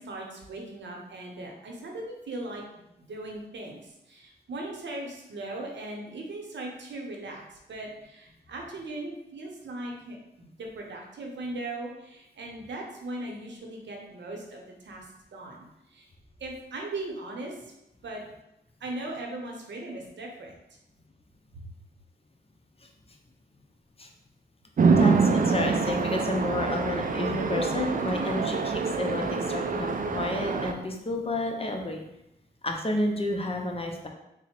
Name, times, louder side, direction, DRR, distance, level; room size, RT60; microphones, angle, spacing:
voice 1, 0.0-2.6 3.1-15.1 15.3-16.1 16.4-17.7 18.0-18.2 18.8-20.6 21.5-21.7, right 2 dB, 90° right, 0 dB, 0.7 m, -39 dB
Chatter / Traffic noise roadway noise / Train, 24.8-30.7, right 4 dB, 50° right, 0.4 m, -25 dB
voice 2, 24.9-32.0 32.6-34.1, left 1 dB, 30° left, 2 dB, 0.6 m, -30 dB
3.5 x 2.0 x 4.3 m, 0.88 s
cardioid pair, 55°, 18 cm